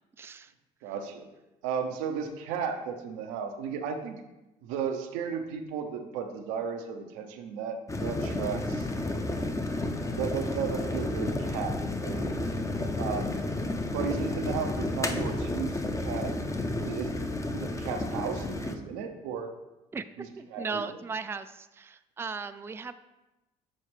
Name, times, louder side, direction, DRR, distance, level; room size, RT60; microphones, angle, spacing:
voice 1, 0.2-0.5 19.9-23.0, right 5 dB, 15° right, 11 dB, 0.3 m, -37 dB
voice 2, 0.8-1.3 1.6-4.2 4.6-8.9 9.7-11.7 12.0-13.4 13.9-16.3 16.8-19.5 20.2-21.0, right 6 dB, 85° right, 5 dB, 0.7 m, -35 dB
sound 1, 7.9-18.8, left 2 dB, 20° left, 0.7 m, -31 dB
7.4 x 4.2 x 3.3 m, 1.0 s
supercardioid pair, 65°, 17 cm